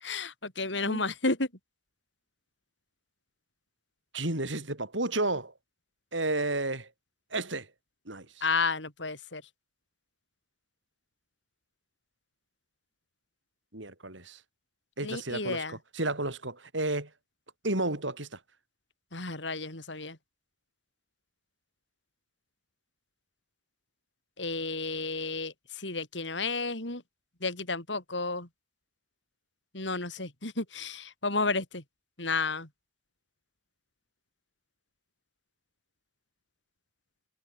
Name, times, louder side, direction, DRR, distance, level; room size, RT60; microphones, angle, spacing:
voice 1, 0.0-1.5 8.4-9.4 15.0-15.8 19.1-20.2 24.4-27.0 27.4-28.5 29.7-31.8 32.2-32.7, left 3 dB, 75° left, 6.0 m, -32 dB
voice 2, 4.1-5.5 6.1-6.9 7.3-7.7 8.1-8.4 13.7-14.4 15.0-17.1 17.6-18.4, right 2 dB, 90° right, 6.7 m, -32 dB
head